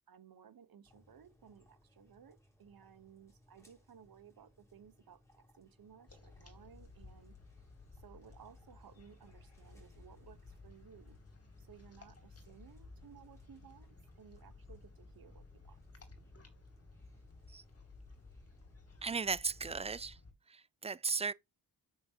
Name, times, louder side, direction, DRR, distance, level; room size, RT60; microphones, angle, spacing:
voice 1, 0.1-7.4 7.9-11.2 11.6-15.8, right 8 dB, 60° right, 1.2 m, -59 dB
sound 1, 0.8-19.7, left 1 dB, 5° left, 4.1 m, -67 dB
sound 2, 6.1-20.3, left 3 dB, 35° left, 2.5 m, -57 dB
voice 2, 19.0-20.2 20.5-21.3, right 4 dB, 15° right, 0.4 m, -36 dB
8.6 x 7.0 x 2.9 m
cardioid pair, 95°, 39 cm